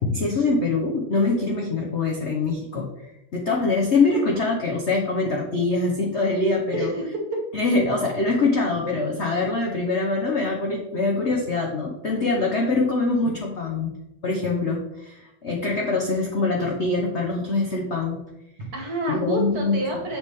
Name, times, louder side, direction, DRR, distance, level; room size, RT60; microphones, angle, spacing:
voice 1, 0.0-2.9 3.3-6.9 7.5-13.9 14.2-18.2 19.1-19.8, left 3 dB, 75° left, -1 dB, 0.6 m, -24 dB
voice 2, 6.7-7.4 18.6-20.2, right 1 dB, 50° right, 0 dB, 1.6 m, -28 dB
7.2 x 4.7 x 3.4 m, 0.88 s
omnidirectional pair, 2.4 m